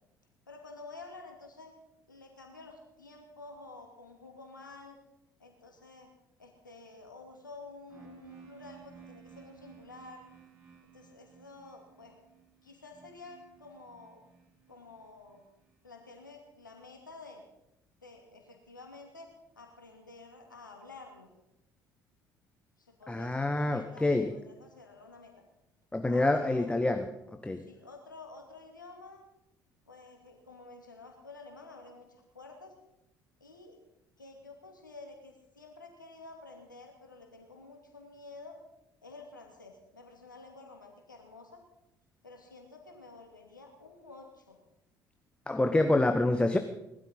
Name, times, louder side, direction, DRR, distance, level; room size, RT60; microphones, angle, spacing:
voice 1, 0.5-1.7 2.1-5.0 5.4-6.1 6.4-10.2 10.9-12.2 12.6-14.2 14.7-15.4 15.8-17.4 18.0-19.3 19.6-21.3 22.8-25.3 26.1-26.7 27.6-29.2 29.9-32.7 33.4-33.8 34.2-38.6 39.0-41.6 42.2-44.6, left 3 dB, 85° left, 3 dB, 2.4 m, -50 dB
sound 1, 7.9-15.7, right 8 dB, 30° right, 7.0 m, -56 dB
voice 2, 23.1-24.3 25.9-27.1 27.4-27.6 45.5-46.6, left 2 dB, 10° left, 7 dB, 1.1 m, -27 dB
19.0 x 12.5 x 5.5 m, 0.87 s
figure-of-eight pair, 55°, 10 cm